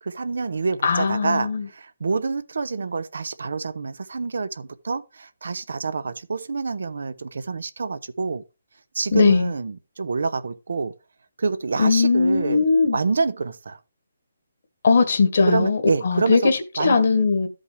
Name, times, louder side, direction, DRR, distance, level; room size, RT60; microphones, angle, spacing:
voice 1, 0.0-8.4 8.9-10.9 11.4-12.6 12.9-13.8 15.5-17.0, right 4 dB, 70° right, 0.8 m, -27 dB
voice 2, 0.8-1.7 9.1-9.5 11.8-13.0 14.8-17.5, left 4 dB, 50° left, 1.4 m, -19 dB
13.0 x 5.3 x 3.3 m
hypercardioid pair, 170°, 0 cm